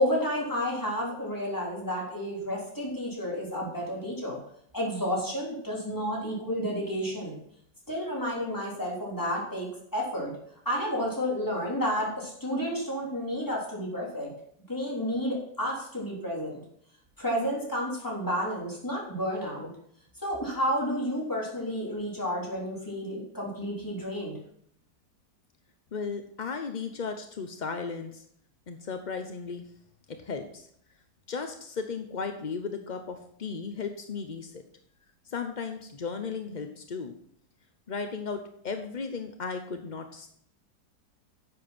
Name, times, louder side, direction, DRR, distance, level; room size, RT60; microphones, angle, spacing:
voice 1, 0.0-4.4 4.7-7.4 7.9-10.3 10.7-14.3 14.7-16.6 17.2-19.7 20.2-24.3, equal, 10° left, -4 dB, 3.6 m, -31 dB
voice 2, 25.9-28.3 28.7-29.6 30.1-30.7 31.3-34.6 35.3-37.1 37.9-40.3, left 5 dB, 55° left, 7 dB, 0.5 m, -35 dB
10.0 x 7.8 x 6.0 m, 0.68 s
omnidirectional pair, 1.9 m